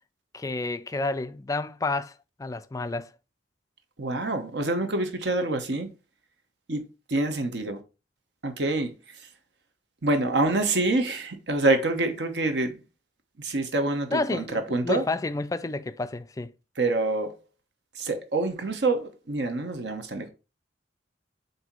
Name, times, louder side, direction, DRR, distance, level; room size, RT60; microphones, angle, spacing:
voice 1, 0.3-2.1 2.4-3.1 14.1-16.5, left 2 dB, 20° left, 0.3 m, -30 dB
voice 2, 4.0-5.9 6.7-7.8 8.4-9.3 10.0-12.8 13.4-15.1 16.8-17.4 17.9-20.3, right 2 dB, 65° right, 0.9 m, -26 dB
7.7 x 2.7 x 4.4 m
head